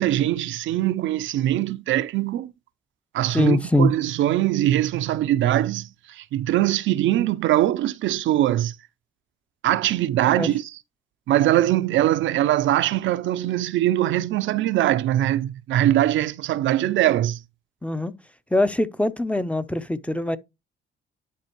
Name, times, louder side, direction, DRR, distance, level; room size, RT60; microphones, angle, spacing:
voice 1, 0.0-2.5 3.1-8.7 9.6-10.6 11.3-17.4, right 13 dB, 75° right, 0.5 m, -22 dB
voice 2, 3.3-3.9 10.3-10.5 17.8-18.1 18.5-20.4, left 1 dB, 5° left, 0.5 m, -22 dB
11.0 x 4.2 x 2.9 m
cardioid pair, 90°, 20 cm